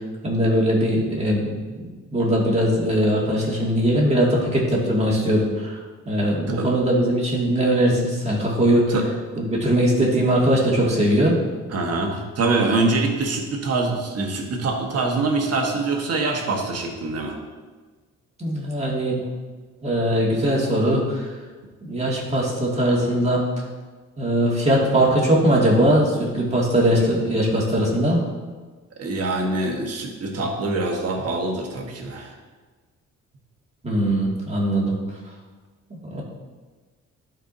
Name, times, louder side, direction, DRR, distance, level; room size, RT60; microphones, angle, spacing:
voice 1, 0.2-1.8 2.1-5.8 6.1-8.9 9.6-11.4 18.4-19.2 19.8-21.3 21.8-23.4 24.2-28.2 33.8-35.0 36.0-36.2, right 1 dB, 20° right, -4 dB, 2.2 m, -20 dB
voice 2, 11.7-17.4 29.0-32.4, right 3 dB, 55° right, 2 dB, 1.4 m, -24 dB
12.0 x 4.7 x 2.7 m, 1.4 s
cardioid pair, 90°, 30 cm